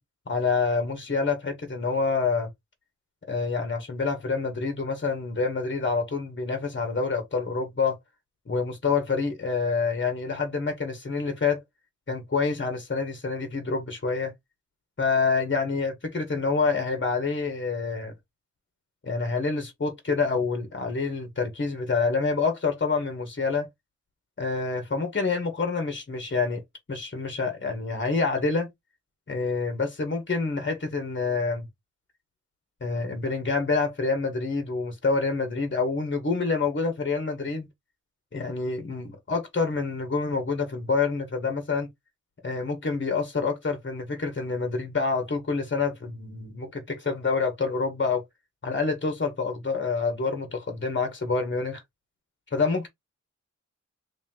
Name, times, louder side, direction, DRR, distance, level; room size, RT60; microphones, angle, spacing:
voice 1, 0.3-2.5 3.3-8.0 8.5-11.6 12.1-14.3 15.0-18.1 19.0-23.7 24.4-26.6 26.9-28.7 29.3-31.7 32.8-37.7 38.3-41.9 42.4-48.2 48.6-51.8 52.5-52.9, left 4 dB, 40° left, 1.5 m, -27 dB
3.6 x 3.0 x 3.8 m
wide cardioid pair, 70°, 30 cm